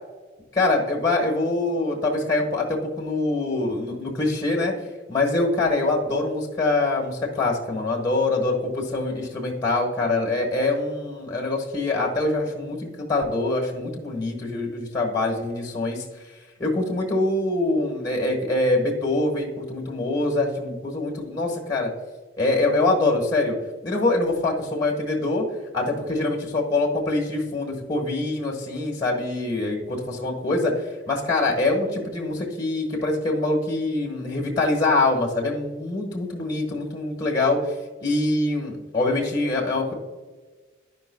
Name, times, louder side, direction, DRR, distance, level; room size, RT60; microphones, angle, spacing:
voice 1, 0.5-4.7 5.1-16.0 16.6-21.9 22.4-23.6 23.8-25.4 25.7-37.7 38.0-39.9, left 2 dB, 20° left, -1 dB, 1.4 m, -24 dB
12.5 x 5.2 x 2.3 m, 1.4 s
head